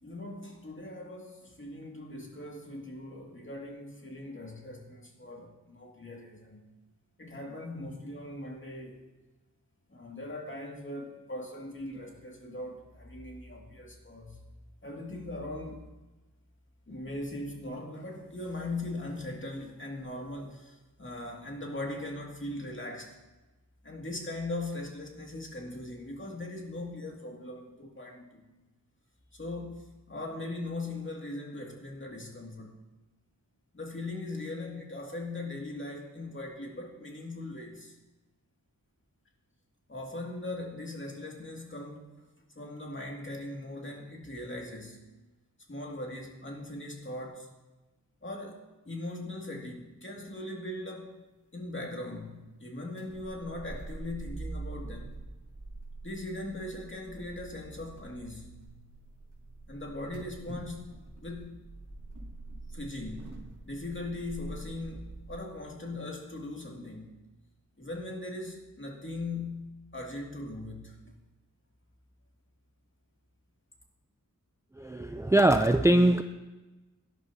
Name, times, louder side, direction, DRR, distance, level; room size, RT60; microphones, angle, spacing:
voice 1, 0.0-6.7 7.2-9.0 9.9-14.4 14.8-15.9 16.9-23.1 23.8-28.4 29.4-32.7 33.7-37.9 39.9-42.1 42.6-45.0 45.7-47.5 48.2-48.6 48.9-51.2 51.5-55.2 56.0-58.5 59.7-60.9 61.2-61.7 62.7-63.4 63.7-67.2 67.8-71.0, left 2 dB, 35° left, 0 dB, 2.3 m, -40 dB
sound 1, 53.0-65.4, right 2 dB, 60° right, 3.4 m, -45 dB
voice 2, 74.8-76.2, right 1 dB, 10° right, 7 dB, 0.4 m, -22 dB
17.5 x 11.0 x 2.8 m, 1.1 s
wide cardioid pair, 70°, 34 cm